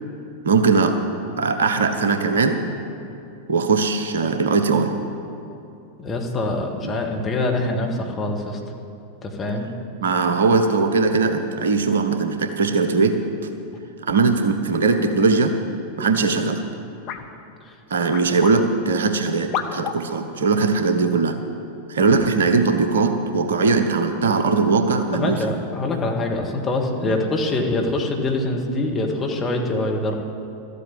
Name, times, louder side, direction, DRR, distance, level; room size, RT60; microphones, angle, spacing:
voice 1, 0.4-1.0 1.4-2.6 3.5-4.9 6.8-6.9 10.0-13.2 14.0-15.5 16.0-16.6 17.9-21.4 21.9-25.4 27.0-27.1, right 4 dB, 65° right, 7 dB, 1.0 m, -20 dB
voice 2, 6.0-8.6 9.2-9.7 17.7-17.8 25.1-30.1, left 2 dB, 20° left, 1 dB, 1.9 m, -24 dB
sound 1, 17.1-17.3 18.1-18.6 19.5-20.0 21.1-21.2 22.0-22.2, left 9 dB, 40° left, 0.9 m, -30 dB
13.5 x 8.3 x 8.5 m, 2.7 s
figure-of-eight pair, 90°, 0 cm